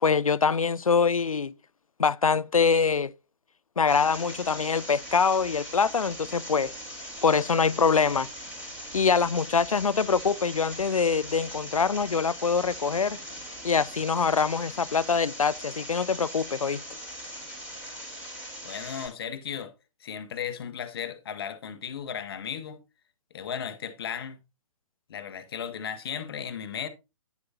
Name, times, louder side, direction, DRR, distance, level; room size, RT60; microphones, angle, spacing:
voice 1, 0.0-1.5 2.0-3.1 3.8-6.7 7.2-8.3 8.9-13.2 13.6-16.8, left 5 dB, 85° left, 0.4 m, -24 dB
sound 1, 3.9-19.1, equal, 10° right, 3.1 m, -41 dB
voice 2, 18.6-19.7 20.0-22.8 23.3-24.4 25.1-26.9, left 8 dB, 45° left, 1.1 m, -35 dB
9.7 x 7.9 x 2.8 m
figure-of-eight pair, 130°, 18 cm